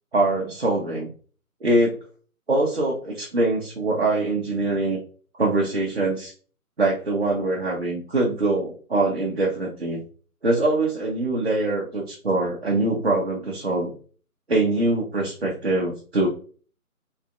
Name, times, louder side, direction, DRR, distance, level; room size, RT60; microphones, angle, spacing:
voice 1, 0.1-1.1 1.6-2.0 2.5-5.0 5.4-6.3 6.8-10.0 10.4-13.9 14.5-16.3, right 2 dB, 45° right, -2 dB, 0.6 m, -23 dB
3.2 x 3.0 x 2.4 m, 0.42 s
figure-of-eight pair, 160°, 45 cm